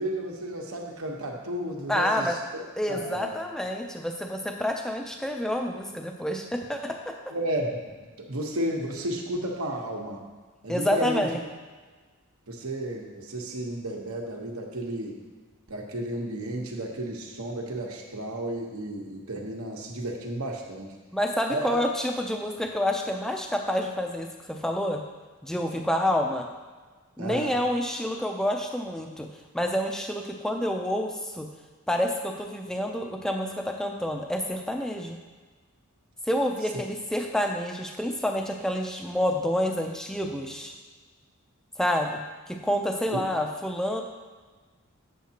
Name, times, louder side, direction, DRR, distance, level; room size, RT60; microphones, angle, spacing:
voice 1, 0.0-2.4 2.9-3.3 7.3-10.2 10.6-11.3 12.5-15.2 15.7-20.9 21.5-21.8 27.2-27.6 43.1-43.2, right 1 dB, 80° right, 0 dB, 1.1 m, -32 dB
voice 2, 1.9-2.4 2.8-7.2 10.7-11.4 21.1-25.0 25.4-26.5 27.2-29.3 29.5-31.5 31.9-35.2 36.3-40.7 41.8-42.2 42.5-44.0, left 1 dB, ahead, 2 dB, 0.4 m, -28 dB
8.2 x 7.3 x 2.9 m, 1.4 s
head